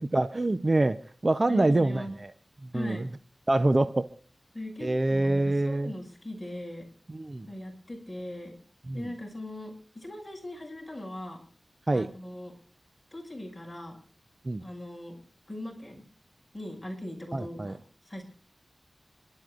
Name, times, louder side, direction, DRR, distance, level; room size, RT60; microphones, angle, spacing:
voice 1, 0.0-2.3 2.6-3.1 3.5-4.1 4.8-5.9 7.1-7.5 8.9-9.1 11.9-12.1 14.4-14.6 17.3-17.7, right 2 dB, 40° right, 10 dB, 0.7 m, -26 dB
voice 2, 1.5-2.1 2.7-3.1 4.5-6.9 7.5-8.6 8.9-11.4 11.9-12.5 13.1-14.0 14.6-15.2 15.5-16.0 16.5-17.8 18.0-18.2, left 1 dB, 15° left, 0 dB, 6.4 m, -39 dB
30.0 x 12.5 x 2.5 m, 0.42 s
wide cardioid pair, 65°, 0 cm